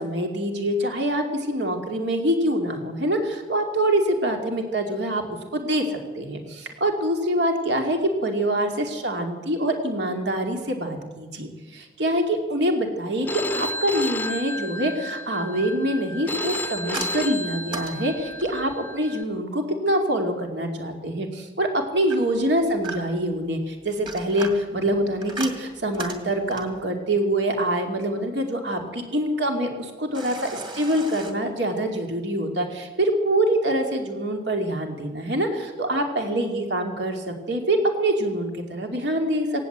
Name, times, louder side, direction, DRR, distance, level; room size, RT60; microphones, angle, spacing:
voice 1, 0.0-5.2 5.5-39.7, right 1 dB, 85° right, 3 dB, 2.6 m, -25 dB
Telephone, 13.3-19.2, left 1 dB, 10° left, 0.5 m, -31 dB
sound 1, 16.5-18.8 22.1-23.3 23.9-26.8 30.1-31.3, right 2 dB, 25° right, 2.3 m, -37 dB
18.5 x 17.5 x 8.1 m, 1.4 s
head